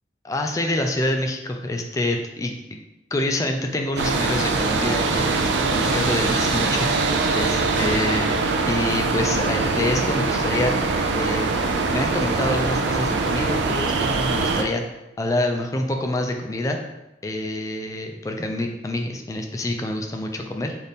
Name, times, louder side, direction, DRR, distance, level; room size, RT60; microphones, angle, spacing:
voice 1, 0.2-2.8 3.1-6.9 7.3-8.3 8.6-10.7 11.1-11.5 11.9-14.8 15.2-16.8 17.2-20.8, left 1 dB, 20° left, 3 dB, 0.3 m, -26 dB
sound 1, 4.0-14.6, right 3 dB, 75° right, 0.4 m, -22 dB
4.1 x 2.5 x 3.4 m, 0.95 s
head